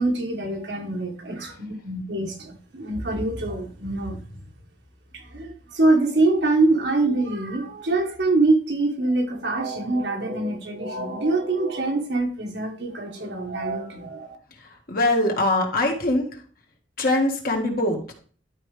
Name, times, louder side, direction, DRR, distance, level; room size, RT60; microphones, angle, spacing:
voice 1, 0.0-4.2 5.1-14.4, right 2 dB, 75° right, 3 dB, 1.5 m, -24 dB
voice 2, 14.6-16.3 17.0-18.1, left 1 dB, 55° left, 2 dB, 1.7 m, -23 dB
11.5 x 4.6 x 3.3 m, 0.44 s
head